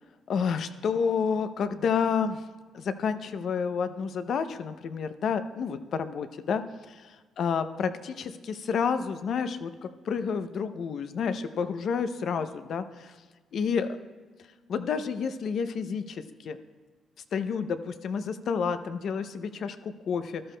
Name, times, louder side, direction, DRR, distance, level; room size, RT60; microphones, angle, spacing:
voice 1, 0.3-2.4 2.7-13.1 13.5-14.0 14.7-16.6 17.3-20.4, left 6 dB, 65° left, 11 dB, 0.5 m, -30 dB
14.0 x 11.5 x 2.2 m, 1.3 s
cardioid pair, 90°, 0 cm